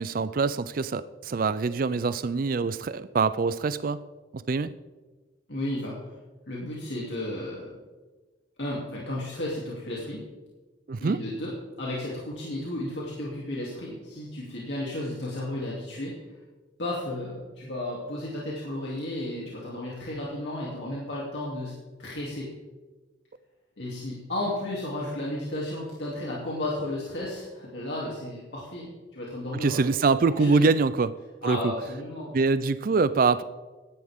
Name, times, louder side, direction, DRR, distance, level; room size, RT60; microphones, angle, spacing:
voice 1, 0.0-4.0 4.3-4.7 10.9-11.2 29.5-31.2 31.4-31.7 32.3-33.4, right 4 dB, 50° right, 14 dB, 0.4 m, -24 dB
voice 2, 5.5-6.2 6.5-7.7 8.6-10.2 11.0-16.1 16.8-21.7 22.0-22.5 23.8-29.9 30.4-30.7 31.4-32.4, left 1 dB, 70° left, -5 dB, 2.9 m, -33 dB
16.5 x 12.0 x 3.7 m, 1.2 s
head